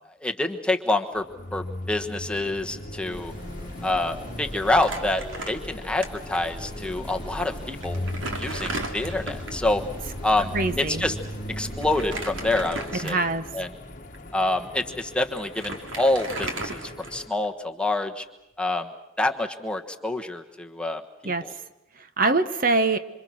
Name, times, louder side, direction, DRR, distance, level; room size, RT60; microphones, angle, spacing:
voice 1, 0.2-1.2 1.5-3.3 3.8-8.1 8.4-9.8 10.2-11.2 11.6-13.2 13.5-13.7 14.3-18.2 18.6-18.9 19.2-21.5, left 2 dB, 5° left, 4 dB, 1.2 m, -27 dB
sound 1, 1.1-17.3, left 1 dB, 40° left, 1.4 m, -38 dB
sound 2, 3.1-12.7, equal, 25° right, 3.4 m, -41 dB
Crumpling crinkling, 4.7-6.1 6.3-6.5 7.3-7.4 7.8-9.6 11.8-13.4 14.0-14.2 15.0-15.1 15.4-17.5, right 2 dB, 75° right, 3.1 m, -35 dB
voice 2, 10.5-11.1 13.0-13.5 21.2-21.6 22.0-23.0, right 3 dB, 45° right, 10 dB, 0.9 m, -24 dB
27.0 x 26.5 x 6.2 m, 0.90 s
head